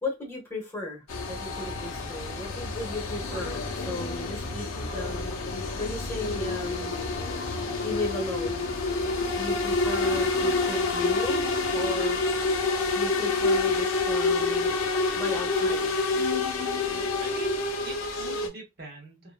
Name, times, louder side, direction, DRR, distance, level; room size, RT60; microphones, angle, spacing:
voice 1, 0.0-5.3 5.8-6.9 7.8-8.8 9.4-12.2 12.9-14.8 15.2-16.0, left 1 dB, 10° left, 1.1 m, -35 dB
sound 1, 1.1-18.5, left 3 dB, 80° left, 0.6 m, -28 dB
voice 2, 17.2-19.3, right 2 dB, 50° right, 0.9 m, -44 dB
2.8 x 2.2 x 2.3 m
head